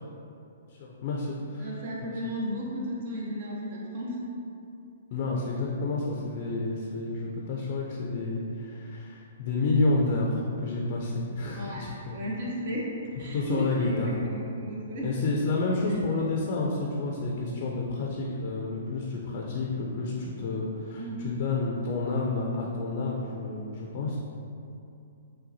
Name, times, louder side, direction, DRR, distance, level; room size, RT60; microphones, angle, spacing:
voice 1, 0.7-1.8 5.1-12.2 13.3-14.1 15.0-24.2, left 3 dB, 45° left, -2 dB, 0.5 m, -30 dB
voice 2, 1.6-4.2 11.5-11.8 12.1-12.9 13.2-15.1 21.0-21.3, equal, 55° right, -3 dB, 0.9 m, -34 dB
6.1 x 2.3 x 2.7 m, 2.6 s
figure-of-eight pair, 120°, 0 cm